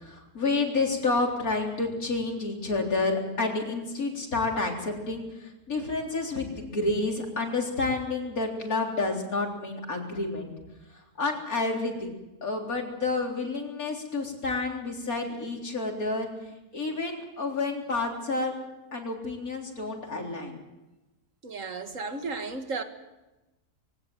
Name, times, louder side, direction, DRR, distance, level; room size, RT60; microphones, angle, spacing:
voice 1, 0.0-10.5 10.9-12.2 12.4-16.3 16.7-18.5 18.9-20.6, left 3 dB, 60° left, 4.2 m, -29 dB
voice 2, 21.4-22.8, right 3 dB, 50° right, 2.1 m, -34 dB
23.0 x 17.5 x 7.8 m
omnidirectional pair, 1.7 m